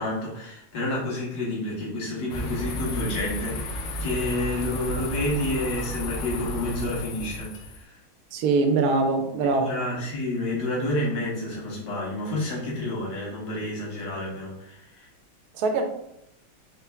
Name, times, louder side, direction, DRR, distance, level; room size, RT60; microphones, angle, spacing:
voice 1, 0.0-7.5 7.8-7.9 9.4-15.1, left 1 dB, 55° left, -5 dB, 1.6 m, -29 dB
sound 1, 2.3-7.8, left 1 dB, 75° left, 1.2 m, -33 dB
voice 2, 8.3-9.7 15.6-15.8, right 3 dB, 75° right, 4 dB, 0.8 m, -22 dB
4.3 x 2.0 x 3.3 m, 0.77 s
omnidirectional pair, 2.2 m